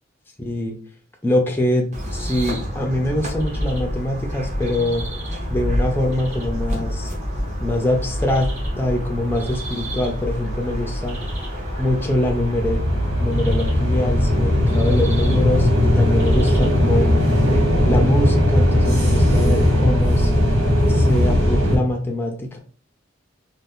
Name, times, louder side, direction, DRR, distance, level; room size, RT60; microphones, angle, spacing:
voice 1, 0.4-0.8 1.2-5.0 5.5-7.1 7.6-8.5 8.8-11.2 11.8-12.8 13.2-17.1 17.9-20.3 20.9-22.6, left 1 dB, 10° left, 1 dB, 0.4 m, -24 dB
sound 1, 1.9-17.6, equal, 35° right, 0.8 m, -28 dB
sound 2, 7.4-7.5 7.7-9.9 10.4-21.8, left 1 dB, 85° right, 1.1 m, -18 dB
2.5 x 2.4 x 3.5 m, 0.43 s
head